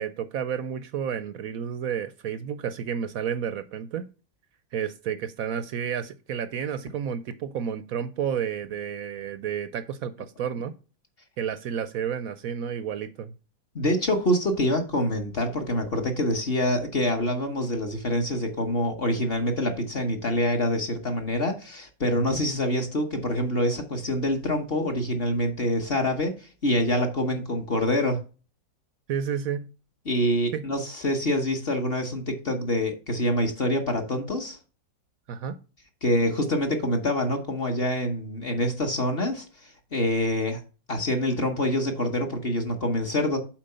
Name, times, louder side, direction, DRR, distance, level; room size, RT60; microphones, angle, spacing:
voice 1, 0.0-4.1 4.7-10.7 11.4-13.3 22.3-22.4 29.1-29.7 30.5-30.6 35.3-35.6, right 8 dB, 70° right, 13 dB, 0.8 m, -31 dB
voice 2, 13.7-28.2 30.1-34.6 36.0-40.6 40.9-43.4, left 1 dB, 40° left, 4 dB, 1.0 m, -26 dB
7.5 x 4.4 x 5.4 m, 0.34 s
omnidirectional pair, 2.0 m